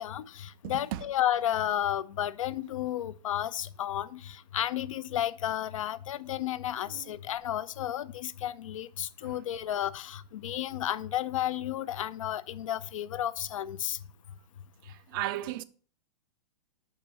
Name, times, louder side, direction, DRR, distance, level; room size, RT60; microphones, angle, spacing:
voice 1, 0.0-14.0, left 11 dB, 50° left, 0.5 m, -32 dB
voice 2, 0.6-1.0 6.9-7.1 9.2-9.4 14.8-15.6, right 14 dB, 30° right, 0.4 m, -36 dB
5.8 x 5.6 x 5.4 m
figure-of-eight pair, 105°, 21 cm